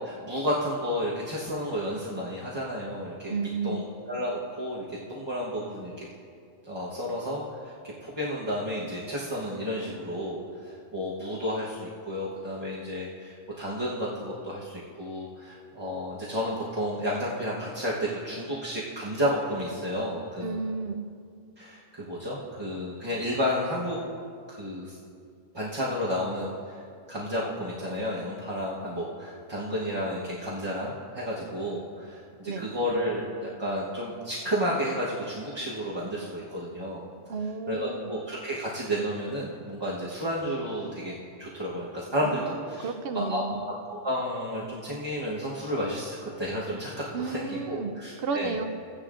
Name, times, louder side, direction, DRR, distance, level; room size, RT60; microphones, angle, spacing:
voice 1, 0.0-3.3 3.6-6.1 6.6-7.7 8.0-20.6 21.6-24.0 24.5-25.0 25.5-26.8 27.1-37.0 37.7-41.1 41.4-43.4 43.9-48.6, equal, 20° right, -6 dB, 0.9 m, -32 dB
voice 2, 3.3-3.8 20.4-21.0 32.5-32.7 37.3-38.1 42.2-43.6 47.1-47.9 48.2-48.7, right 4 dB, 60° right, 9 dB, 0.7 m, -32 dB
16.5 x 10.0 x 2.5 m, 2.3 s
omnidirectional pair, 1.3 m